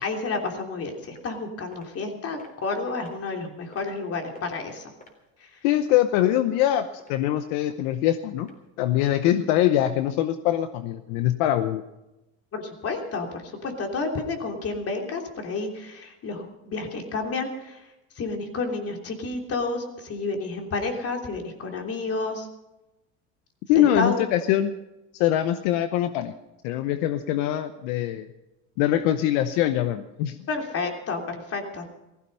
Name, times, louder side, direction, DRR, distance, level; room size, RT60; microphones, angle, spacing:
voice 1, 0.0-4.9 5.4-5.6 12.5-22.5 23.7-24.2 30.5-31.9, left 3 dB, 40° left, 2 dB, 3.2 m, -30 dB
sound 1, 1.2-1.4 1.7-1.9 2.4-2.7 3.1-3.2 3.7-4.0 4.4-4.6 5.0-5.8 6.3-6.7 7.0-7.1 7.7-7.8 8.4-8.5 9.1-9.2 9.7-9.8, left 2 dB, 25° left, 3.7 m, -50 dB
voice 2, 5.6-8.5 8.8-11.8 23.7-24.7 25.1-26.3 26.6-28.3 28.8-30.4, left 12 dB, 75° left, 10 dB, 0.8 m, -23 dB
16.0 x 15.0 x 5.6 m, 0.97 s
supercardioid pair, 95°, 36 cm